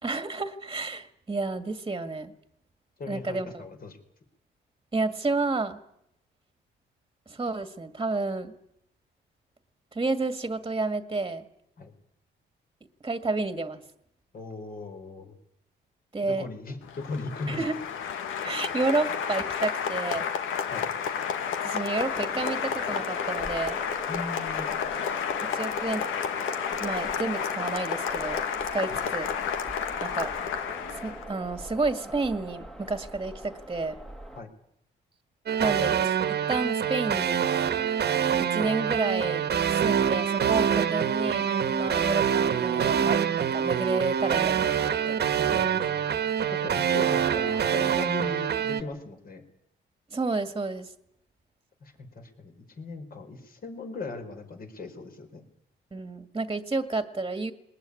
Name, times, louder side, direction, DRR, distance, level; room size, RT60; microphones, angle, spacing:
voice 1, 0.0-2.3 3.1-3.6 4.9-5.8 7.3-8.6 9.9-11.5 13.0-13.8 16.1-16.5 17.5-17.8 18.4-20.3 21.6-23.8 25.5-26.0 26.8-28.4 28.7-29.3 30.0-30.3 30.9-34.0 35.6-37.4 38.4-45.7 50.1-50.9 55.9-57.5, right 3 dB, 20° right, 9 dB, 1.9 m, -30 dB
voice 2, 3.0-4.0 11.8-11.9 14.3-15.3 16.2-17.6 20.7-20.9 24.1-24.7 28.9-29.0 34.3-34.5 45.5-46.1 46.5-49.4 51.8-55.4, left 3 dB, 45° left, 5 dB, 4.7 m, -38 dB
Applause, 16.8-31.3, left 7 dB, 85° left, 1.6 m, -31 dB
sound 1, 22.0-34.4, right 1 dB, ahead, 1.6 m, -42 dB
sound 2, 35.5-48.8, right 8 dB, 55° right, 1.5 m, -25 dB
21.0 x 20.0 x 9.9 m, 0.76 s
cardioid pair, 90°, 20 cm